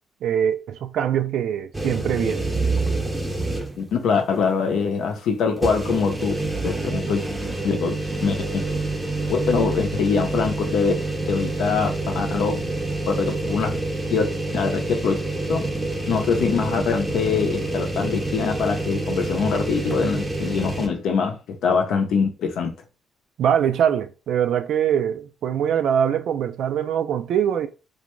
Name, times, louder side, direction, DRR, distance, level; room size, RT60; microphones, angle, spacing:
voice 1, 0.2-2.5 23.4-27.7, right 9 dB, 75° right, 0.3 m, -23 dB
sound 1, 1.7-3.9 4.3-4.4 5.6-20.9, right 2 dB, 15° right, 0.5 m, -27 dB
voice 2, 3.8-6.3 6.6-7.2 7.6-7.9 8.2-8.6 9.3-10.9 11.3-12.7 13.1-13.8 14.1-14.3 14.5-15.1 15.5-15.6 16.1-22.7, left 5 dB, 75° left, 0.6 m, -23 dB
2.5 x 2.2 x 3.0 m
cardioid pair, 90°, 0 cm